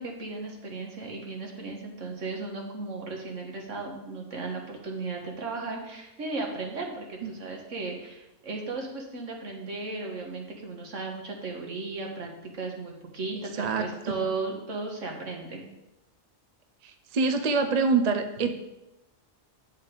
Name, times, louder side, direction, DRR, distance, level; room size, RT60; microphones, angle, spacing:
voice 1, 0.0-15.6, right 3 dB, 70° right, 1 dB, 1.8 m, -35 dB
voice 2, 13.3-14.1 16.8-18.5, right 4 dB, 40° right, 7 dB, 0.6 m, -26 dB
8.9 x 5.5 x 5.1 m, 0.95 s
omnidirectional pair, 1.4 m